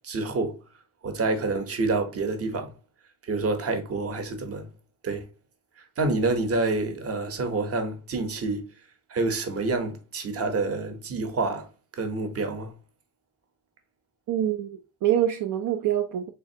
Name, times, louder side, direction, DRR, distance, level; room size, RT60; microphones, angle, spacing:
voice 1, 0.0-0.6 1.0-2.7 3.3-4.7 5.0-5.2 6.0-8.6 9.1-11.7 12.0-12.7, right 3 dB, 40° right, 0.8 m, -27 dB
voice 2, 14.3-16.3, right 11 dB, 65° right, 0.5 m, -25 dB
3.7 x 3.3 x 2.7 m
wide cardioid pair, 150°, 34 cm